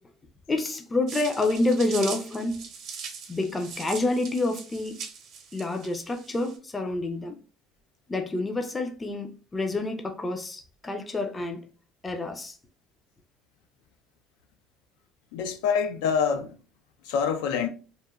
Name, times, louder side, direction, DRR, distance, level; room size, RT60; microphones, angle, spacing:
voice 1, 0.5-2.7 3.3-5.0 5.5-7.4 8.1-11.7 12.0-12.5, left 2 dB, 15° left, 0.4 m, -28 dB
sound 1, 1.1-6.6, right 6 dB, 55° right, 0.7 m, -41 dB
voice 2, 15.3-16.5 17.0-17.7, left 6 dB, 90° left, 0.4 m, -26 dB
2.9 x 2.1 x 2.3 m
cardioid pair, 120°, 0 cm